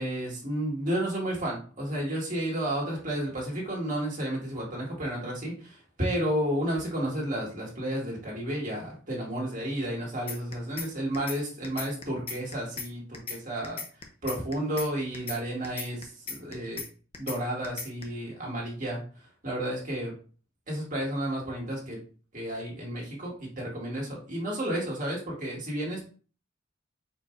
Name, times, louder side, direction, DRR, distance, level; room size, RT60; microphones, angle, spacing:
voice 1, 0.0-13.8 14.2-16.8 17.2-20.1 20.7-22.0 22.3-26.0, right 1 dB, 40° right, -3 dB, 1.8 m, -32 dB
sound 1, 10.3-10.9 11.1-11.4 11.6-12.9 13.1-13.4 13.6-14.9 15.1-15.4 15.6-16.9 17.1-17.4 17.6-18.0, left 6 dB, 30° left, 0.7 m, -36 dB
4.5 x 2.6 x 4.4 m, 0.39 s
head